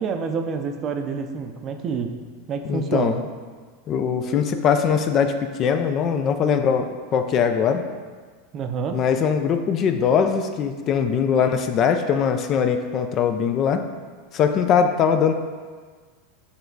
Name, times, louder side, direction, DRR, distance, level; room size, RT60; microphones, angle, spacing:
voice 1, 0.0-2.1 2.5-3.2 8.5-9.0, right 5 dB, 35° right, 6 dB, 0.5 m, -27 dB
voice 2, 2.7-3.2 3.9-7.8 8.9-13.8 14.3-15.3, left 7 dB, 40° left, 8 dB, 0.4 m, -21 dB
7.0 x 3.4 x 3.9 m, 1.5 s
supercardioid pair, 120°, 0 cm